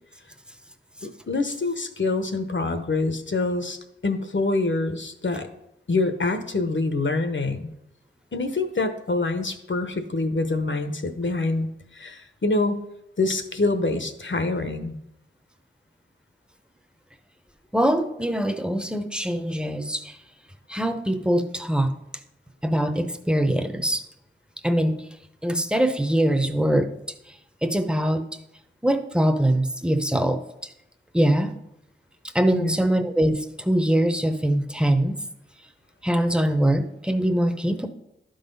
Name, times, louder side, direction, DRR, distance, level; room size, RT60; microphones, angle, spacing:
voice 1, 1.0-3.8 4.0-5.5 5.9-7.7 8.3-12.9 13.2-15.0 32.5-32.9, left 3 dB, 65° left, 0.9 m, -26 dB
voice 2, 17.7-20.2 20.7-21.9 22.6-24.0 24.6-25.0 25.4-26.9 27.3-28.3 28.8-30.7 31.1-31.5 32.3-35.2 36.0-37.9, right 1 dB, 5° right, 0.7 m, -23 dB
11.5 x 4.0 x 5.3 m
wide cardioid pair, 45°, 21 cm